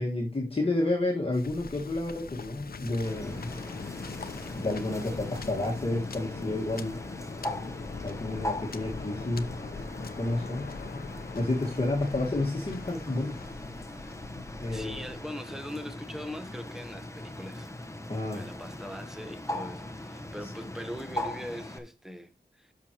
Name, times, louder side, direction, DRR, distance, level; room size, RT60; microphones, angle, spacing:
voice 1, 0.0-3.5 4.5-7.0 8.0-9.5 10.2-11.0 11.3-13.4 14.6-15.0 18.1-18.5 20.4-20.5, left 2 dB, 35° left, 1.7 m, -30 dB
Waves surf, 1.3-15.3, left 4 dB, 65° left, 0.8 m, -41 dB
Bird, 3.0-21.8, left 1 dB, 15° left, 1.1 m, -40 dB
voice 2, 14.7-17.7 18.3-22.7, equal, 5° right, 1.2 m, -41 dB
11.0 x 6.3 x 3.0 m
wide cardioid pair, 75°, 17 cm